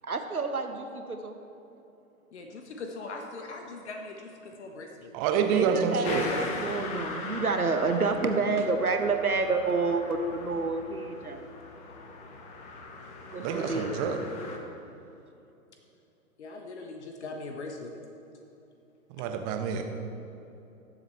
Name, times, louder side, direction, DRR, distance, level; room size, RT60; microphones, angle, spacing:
voice 1, 0.0-1.4 5.5-11.5 13.3-14.1, right 3 dB, 85° right, 6 dB, 0.9 m, -29 dB
voice 2, 2.3-5.1 16.4-17.9, left 3 dB, 50° left, 3 dB, 1.2 m, -40 dB
voice 3, 5.1-6.3 13.4-14.2 19.2-19.8, right 7 dB, 25° right, 5 dB, 0.9 m, -27 dB
sound 1, 6.0-14.6, left 3 dB, 15° left, 0.8 m, -40 dB
20.0 x 7.6 x 3.2 m, 2.9 s
figure-of-eight pair, 110°, 43 cm